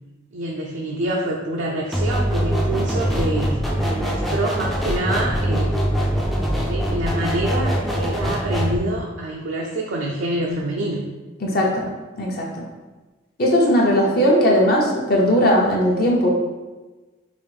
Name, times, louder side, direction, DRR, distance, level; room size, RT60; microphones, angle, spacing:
voice 1, 0.3-5.7 6.5-11.0, right 1 dB, 75° right, -2 dB, 0.5 m, -26 dB
sound 1, 1.9-8.8, equal, ahead, 0.4 m, -22 dB
voice 2, 11.4-11.9 12.2-12.6 13.4-16.3, equal, 50° left, -2 dB, 0.7 m, -18 dB
5.0 x 2.5 x 3.2 m, 1.2 s
head